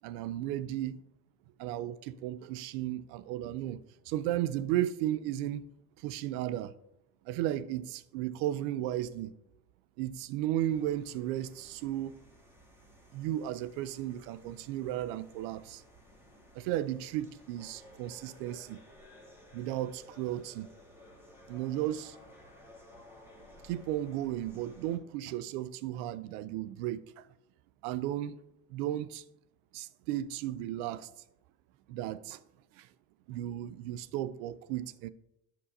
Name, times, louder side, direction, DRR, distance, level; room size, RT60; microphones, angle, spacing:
voice 1, 0.0-1.0 1.6-3.8 4.1-5.6 6.0-6.7 7.3-9.3 10.0-12.2 13.1-15.8 16.5-18.8 19.5-20.7 21.5-22.2 23.6-27.2 27.8-28.4 28.7-29.2 29.7-31.1 31.9-32.4 32.8-32.9 33.3-35.1, right 13 dB, 80° right, 0.5 m, -34 dB
sound 1, 10.6-25.0, left 1 dB, 5° right, 1.6 m, -56 dB
10.0 x 5.6 x 2.6 m
supercardioid pair, 85°, 42 cm